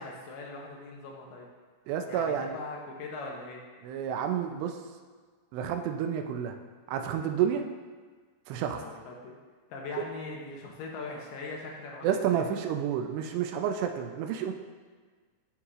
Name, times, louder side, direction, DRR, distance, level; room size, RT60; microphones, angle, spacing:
voice 1, 0.0-1.5 2.1-3.6 8.5-9.4 9.7-12.5, left 3 dB, 80° left, -1 dB, 2.7 m, -41 dB
voice 2, 1.9-2.5 3.8-4.8 5.5-6.5 6.9-7.7 8.5-8.8 10.0-10.1 12.0-14.5, right 8 dB, 85° right, 5 dB, 2.8 m, -30 dB
13.0 x 4.8 x 2.5 m, 1.5 s
omnidirectional pair, 4.8 m